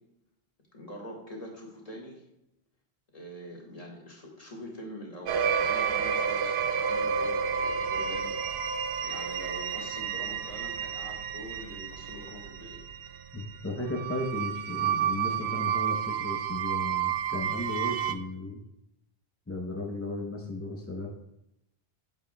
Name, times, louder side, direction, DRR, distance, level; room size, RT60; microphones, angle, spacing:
voice 1, 0.7-2.2 3.1-8.3 8.7-12.8, left 1 dB, 35° left, -2 dB, 1.8 m, -44 dB
sound 1, 5.3-18.1, right 7 dB, 90° right, 0.9 m, -30 dB
voice 2, 13.3-18.6 19.5-21.1, left 2 dB, 15° left, 0 dB, 0.6 m, -35 dB
8.6 x 7.2 x 2.2 m, 0.84 s
omnidirectional pair, 1.1 m